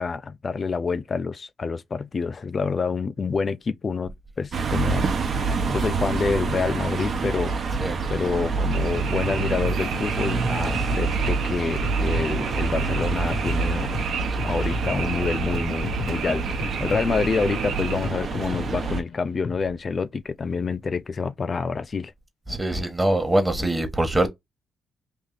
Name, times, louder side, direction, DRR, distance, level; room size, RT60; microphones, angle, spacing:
voice 1, 0.0-7.5 8.1-13.9 14.4-22.1, left 5 dB, 35° left, 0.4 m, -27 dB
sound 1, 4.5-19.0, right 4 dB, 50° right, 0.9 m, -27 dB
Frog, 8.7-18.1, right 8 dB, 80° right, 0.7 m, -34 dB
sound 2, 9.6-10.1 10.4-11.3 11.8-12.6 13.0-15.1 15.5-17.6 18.0-19.7, left 5 dB, 55° left, 0.9 m, -36 dB
voice 2, 22.5-24.3, right 1 dB, 15° right, 1.2 m, -23 dB
3.4 x 2.6 x 4.0 m
cardioid pair, 90°, 0 cm